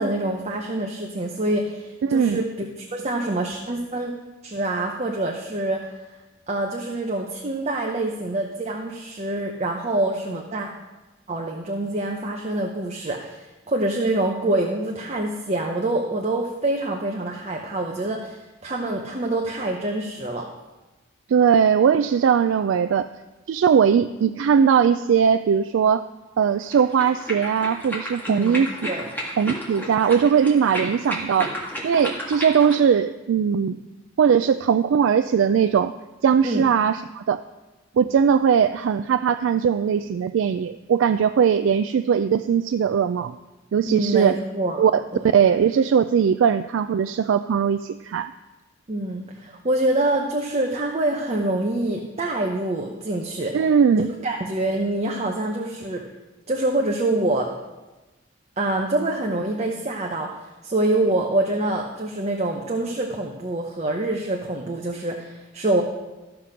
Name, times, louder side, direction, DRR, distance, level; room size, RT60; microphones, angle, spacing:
voice 1, 0.0-4.1 4.4-5.9 6.5-10.7 11.3-20.5 28.3-28.6 28.9-29.1 36.4-36.7 43.9-44.8 45.1-45.3 48.9-53.6 53.9-56.1 56.5-57.6 58.6-60.4 60.6-65.8, right 2 dB, 35° right, 1 dB, 0.8 m, -26 dB
voice 2, 2.0-2.4 21.3-23.1 23.5-26.0 26.4-28.7 29.4-31.5 31.8-33.8 34.2-35.9 36.2-37.4 38.0-43.4 43.7-44.4 44.8-45.0 45.3-48.3 53.5-54.1, right 7 dB, 80° right, 10 dB, 0.3 m, -19 dB
sound 1, 26.6-32.8, equal, 10° left, 1.9 m, -32 dB
13.5 x 5.9 x 5.1 m, 1.1 s
head